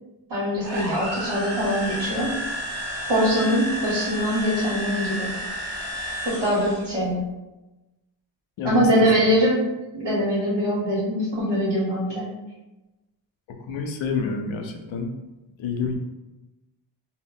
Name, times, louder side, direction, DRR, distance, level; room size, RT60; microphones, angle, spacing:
voice 1, 0.3-2.3 3.1-5.3 6.2-7.2 8.6-9.6 9.9-12.2, equal, 80° right, -11 dB, 1.1 m, -23 dB
sound 1, 0.6-6.9, equal, 35° right, 1.0 m, -31 dB
voice 2, 8.6-8.9 9.2-9.3 13.7-15.1 15.6-16.0, left 5 dB, 85° left, 3 dB, 0.5 m, -28 dB
2.1 x 2.1 x 3.7 m, 1.0 s
cardioid pair, 60°, 45 cm